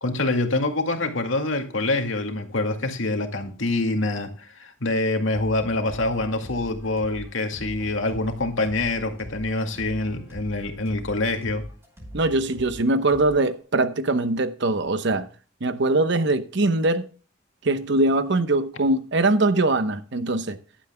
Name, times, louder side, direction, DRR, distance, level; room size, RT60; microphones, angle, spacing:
voice 1, 0.0-11.6, left 2 dB, 85° left, 2.1 m, -25 dB
sound 1, 5.3-13.6, equal, 15° right, 5.5 m, -42 dB
voice 2, 12.1-15.3 15.6-17.1 17.6-20.6, right 2 dB, 65° right, 1.0 m, -22 dB
15.5 x 11.0 x 2.2 m
head